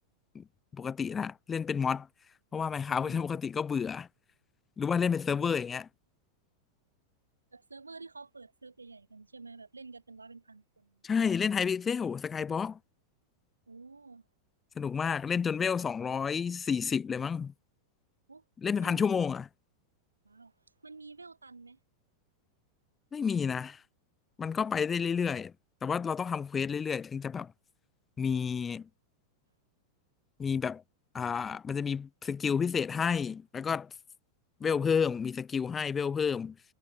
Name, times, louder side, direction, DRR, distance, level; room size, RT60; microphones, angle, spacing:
voice 1, 0.7-2.1 2.5-4.1 4.8-5.8 11.0-12.8 14.8-17.5 18.6-19.5 23.1-23.8 24.4-25.5 25.8-27.5 28.2-28.9 30.4-30.8 31.1-33.9 34.6-36.5, left 6 dB, 20° left, 1.0 m, -30 dB
voice 2, 2.9-3.2 7.5-11.1 13.7-14.3 18.3-18.4 18.8-19.3 20.2-21.8, right 3 dB, 80° right, 6.0 m, -50 dB
figure-of-eight pair, 90°, 0 cm